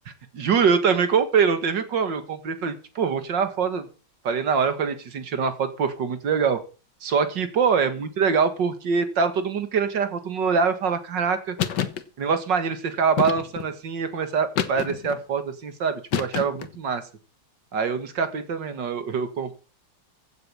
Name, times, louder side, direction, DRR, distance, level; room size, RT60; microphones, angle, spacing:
voice 1, 0.3-3.9 4.2-6.6 7.0-11.6 12.2-17.0 17.7-19.6, right 6 dB, 70° right, 10 dB, 2.4 m, -24 dB
sound 1, 11.6-12.0 13.2-13.7 14.6-15.2 16.1-16.8, left 9 dB, 65° left, 1.8 m, -27 dB
15.5 x 7.9 x 7.0 m, 0.37 s
omnidirectional pair, 2.0 m